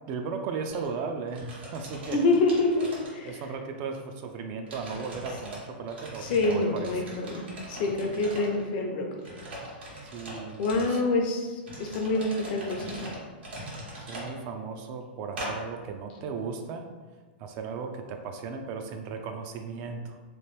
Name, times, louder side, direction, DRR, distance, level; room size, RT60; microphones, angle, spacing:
voice 1, 0.1-2.3 3.2-7.0 10.0-11.0 14.0-16.9 17.4-20.2, right 5 dB, 40° right, 5 dB, 0.3 m, -36 dB
sound 1, 0.7-0.9 1.3-3.6 3.9-4.0 4.7-5.6 5.9-8.6 9.2-11.0 11.6-14.3 15.4-15.5, right 1 dB, 90° right, 1.2 m, -41 dB
voice 2, 2.1-3.3 6.3-9.0 10.6-11.5 11.8-13.1, left 2 dB, 55° left, 2 dB, 0.6 m, -26 dB
3.0 x 2.5 x 3.1 m, 1.3 s
hypercardioid pair, 135°, 6 cm